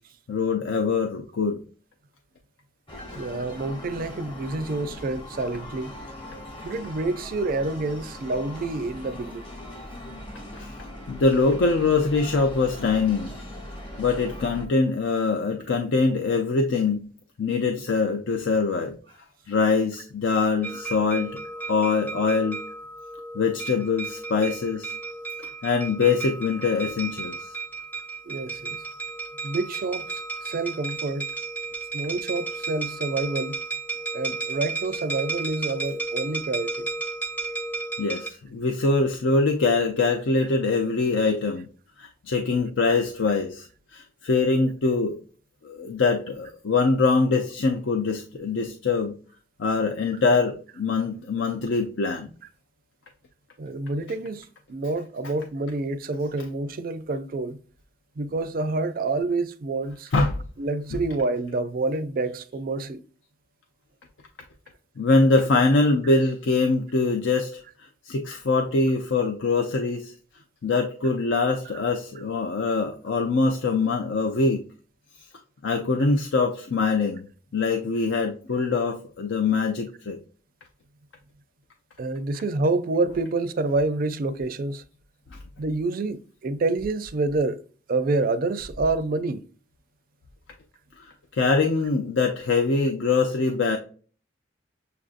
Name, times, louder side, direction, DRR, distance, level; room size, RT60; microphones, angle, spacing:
voice 1, 0.3-1.6 10.5-13.3 14.0-17.1 17.4-19.0 19.5-21.4 21.7-22.6 23.3-24.9 25.4-27.6 38.0-41.7 42.0-43.7 43.9-45.2 45.6-49.1 49.6-52.3 60.1-60.4 60.9-61.0 65.0-67.6 68.0-70.1 70.6-74.6 75.6-77.2 77.5-80.2 85.3-85.4 91.0-93.8, left 3 dB, 75° left, 0.5 m, -23 dB
sound 1, 2.9-14.7, left 1 dB, 25° left, 0.9 m, -40 dB
voice 2, 3.1-6.0 6.6-9.4 28.3-28.8 29.4-31.3 31.9-33.6 34.1-36.9 53.6-57.6 58.2-60.1 60.6-63.0 82.0-84.8 85.6-87.6 87.9-89.4, right 3 dB, 50° right, 0.4 m, -28 dB
sound 2, 20.6-38.3, right 4 dB, 10° left, 0.6 m, -33 dB
6.8 x 2.5 x 2.4 m
head